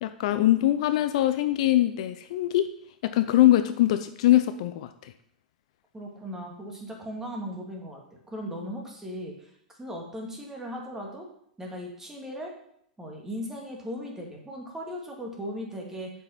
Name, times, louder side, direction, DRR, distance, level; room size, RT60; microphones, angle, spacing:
voice 1, 0.0-2.7 3.0-5.1, left 14 dB, 55° left, 10 dB, 0.5 m, -22 dB
voice 2, 5.9-8.0 8.3-9.5 9.8-11.3 11.6-12.5 13.0-16.1, equal, 10° right, -1 dB, 2.4 m, -37 dB
7.3 x 5.7 x 5.8 m, 0.70 s
figure-of-eight pair, 100°, 4 cm